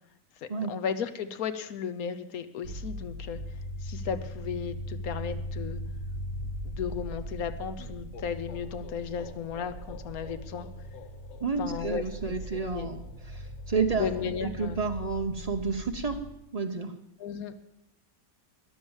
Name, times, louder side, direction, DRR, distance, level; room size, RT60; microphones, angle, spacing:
voice 1, 0.4-3.4 3.8-5.8 6.6-10.7 11.6-12.4 12.7-12.9 13.9-14.8 17.2-17.5, left 7 dB, 60° left, 11 dB, 1.2 m, -35 dB
sound 1, 2.6-16.3, equal, 60° right, 1.5 m, -39 dB
sound 2, 7.8-15.5, left 8 dB, 85° left, 1.8 m, -52 dB
voice 2, 11.4-13.0 13.2-14.1 14.4-16.2 16.5-16.9, right 4 dB, 35° right, 6 dB, 0.6 m, -30 dB
13.5 x 10.0 x 7.2 m, 0.82 s
omnidirectional pair, 1.9 m